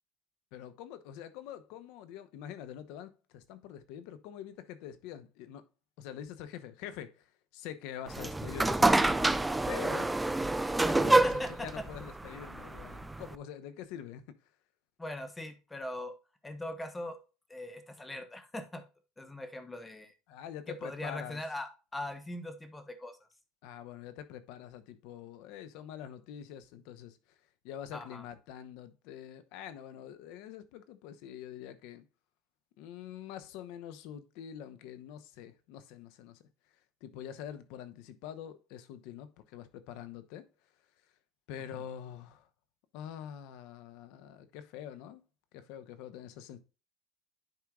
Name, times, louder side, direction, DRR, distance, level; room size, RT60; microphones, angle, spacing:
voice 1, 0.5-5.6 6.0-7.3 7.5-9.3 9.7-10.4 10.7-14.2 20.3-21.4 23.6-27.2 27.6-32.0 32.8-36.4 37.0-40.4 41.5-42.5 42.9-45.2 45.5-46.6, left 10 dB, 75° left, 0.9 m, -45 dB
sound 1, 8.1-13.4, right 2 dB, 10° right, 0.4 m, -27 dB
voice 2, 11.0-11.9 13.0-13.1 15.0-16.1 16.4-17.2 17.5-18.8 19.2-20.1 20.7-23.2 27.9-28.2 41.7-41.8, left 1 dB, 10° left, 1.1 m, -41 dB
10.5 x 4.5 x 2.4 m
cardioid pair, 125°, 0 cm